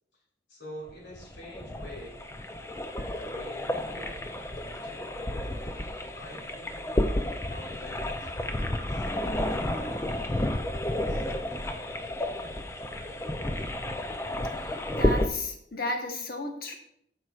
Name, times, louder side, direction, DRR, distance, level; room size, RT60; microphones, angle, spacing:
voice 1, 0.5-2.2 2.9-6.8 7.1-9.0 9.6-12.6 12.9-13.2, left 1 dB, 80° left, -3 dB, 2.9 m, -48 dB
sound 1, 0.9-15.3, left 1 dB, 15° left, 0.4 m, -31 dB
voice 2, 14.6-16.8, left 2 dB, 55° left, 2 dB, 1.1 m, -34 dB
12.0 x 4.5 x 2.4 m, 0.71 s
head